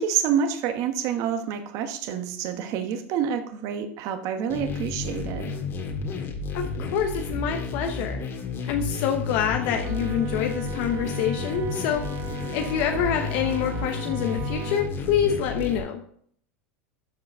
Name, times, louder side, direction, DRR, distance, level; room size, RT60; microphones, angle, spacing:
voice 1, 0.0-5.5, right 8 dB, 55° right, 8 dB, 1.2 m, -28 dB
sound 1, 4.5-15.8, left 4 dB, 35° left, 1.8 m, -32 dB
voice 2, 6.5-8.2 8.7-16.0, left 8 dB, 60° left, 4 dB, 1.0 m, -26 dB
Wind instrument woodwind instrument, 9.6-15.0, right 8 dB, 35° right, 0.7 m, -39 dB
12.5 x 4.8 x 3.5 m, 0.63 s
supercardioid pair, 110°, 7 cm